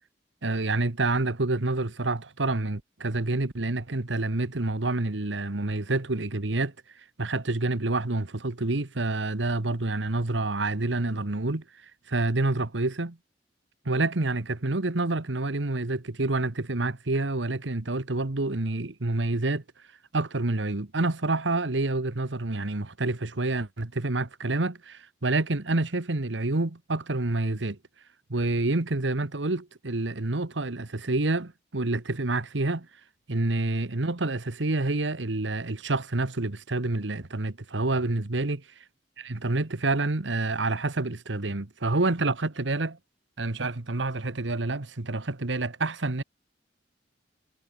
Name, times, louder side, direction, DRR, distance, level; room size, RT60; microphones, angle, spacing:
voice 1, 0.4-6.7 7.2-11.6 12.1-13.2 13.8-19.6 20.1-27.8 28.3-32.9 33.3-38.6 39.2-43.0 43.4-46.2, right 2 dB, 85° right, 1.4 m, -28 dB
head